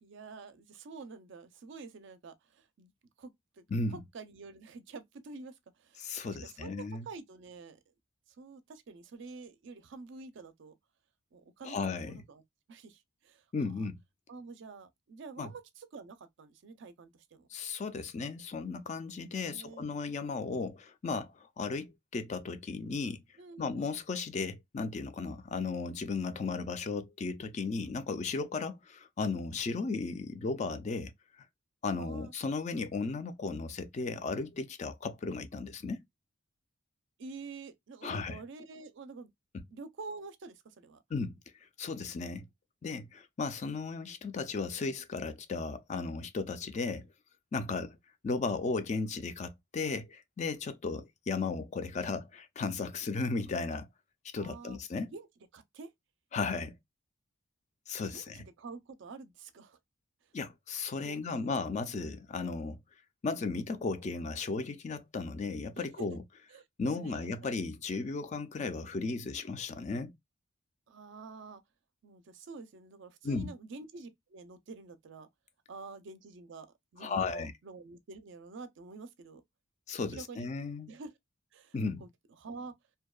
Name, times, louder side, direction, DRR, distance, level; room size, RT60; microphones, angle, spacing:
voice 1, 0.0-2.9 3.2-3.6 3.9-7.8 8.4-10.7 11.3-12.4 12.7-13.4 14.3-17.5 19.3-19.9 23.4-23.9 32.0-32.3 37.2-39.3 39.7-41.0 54.4-54.8 55.1-55.3 55.5-55.9 58.1-59.8 61.0-61.5 65.8-65.9 66.5-66.6 67.0-67.6 70.9-71.6 72.0-75.3 75.7-76.7 76.9-79.4 80.1-80.5 80.9-81.1 81.5-82.1 82.4-82.8, right 4 dB, 60° right, 0.4 m, -48 dB
voice 2, 6.0-7.1 11.6-12.2 13.5-14.0 15.4-15.5 17.5-23.2 23.6-31.1 31.8-36.0 38.0-38.4 39.5-39.6 41.1-41.3 41.8-42.4 42.8-47.1 47.5-48.0 48.2-53.9 54.2-55.1 56.3-56.8 57.9-58.4 60.3-62.8 63.2-66.2 66.8-70.1 73.2-73.5 77.0-77.5 79.9-80.9 81.7-82.0, left 4 dB, 35° left, 0.3 m, -35 dB
2.6 x 2.1 x 2.2 m
head